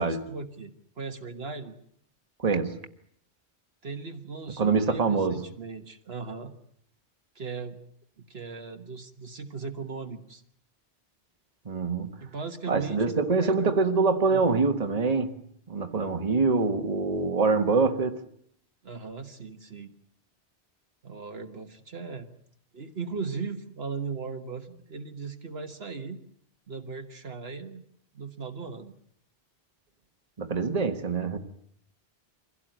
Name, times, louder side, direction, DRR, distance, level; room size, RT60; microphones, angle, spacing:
voice 1, 0.0-1.7 3.8-6.5 7.3-7.8 8.2-10.4 12.2-13.7 14.3-14.5 18.8-19.9 21.0-22.3 22.7-26.2 26.7-27.8 28.1-28.9, right 4 dB, 65° right, 1.6 m, -38 dB
voice 2, 2.4-2.8 4.6-5.4 11.6-12.2 12.7-15.3 15.7-18.2 30.4-31.4, right 4 dB, 35° right, 1.5 m, -25 dB
24.0 x 16.5 x 9.1 m
omnidirectional pair, 1.1 m